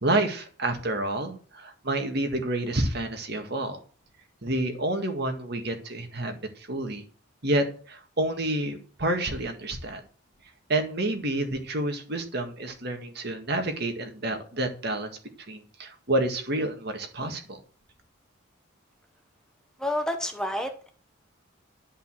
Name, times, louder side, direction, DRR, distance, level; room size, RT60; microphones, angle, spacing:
voice 1, 0.0-3.8 4.4-7.0 7.4-10.0 10.7-15.1 15.5-17.6, right 1 dB, 50° right, 6 dB, 1.9 m, -29 dB
voice 2, 19.8-20.9, left 1 dB, 5° left, 5 dB, 1.1 m, -29 dB
11.0 x 5.5 x 7.6 m, 0.41 s
head